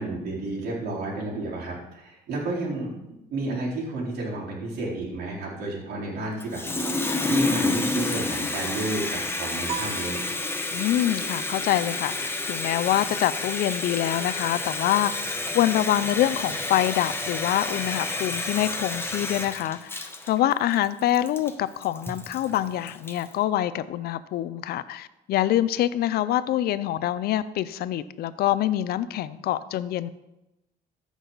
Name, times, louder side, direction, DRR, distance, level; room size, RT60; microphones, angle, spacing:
voice 1, 0.0-2.9 3.3-10.2, right 2 dB, 75° right, -5 dB, 4.1 m, -31 dB
Water tap faucet, 6.4-23.3, left 2 dB, 15° left, 1.1 m, -30 dB
sound 1, 9.7-11.1, right 6 dB, 35° right, 0.8 m, -38 dB
voice 2, 10.7-15.1 15.5-19.9 20.3-30.1, left 13 dB, 65° left, 15 dB, 0.6 m, -25 dB
Drum, 22.1-25.0, right 1 dB, 10° right, 1.2 m, -48 dB
14.5 x 6.3 x 4.0 m, 0.95 s
cardioid pair, 110°, 17 cm